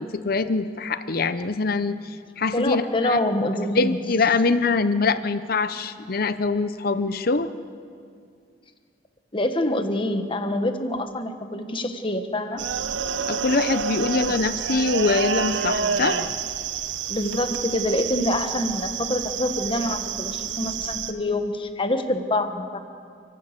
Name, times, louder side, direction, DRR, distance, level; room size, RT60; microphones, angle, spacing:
voice 1, 0.0-3.2 3.7-7.5 13.3-16.2, left 4 dB, 55° left, 12 dB, 0.7 m, -24 dB
voice 2, 2.5-4.0 9.3-12.6 17.1-22.8, left 1 dB, 30° left, 7 dB, 1.3 m, -26 dB
sound 1, 12.6-21.1, right 7 dB, 90° right, 1.0 m, -28 dB
29.5 x 12.0 x 8.1 m, 2.2 s
head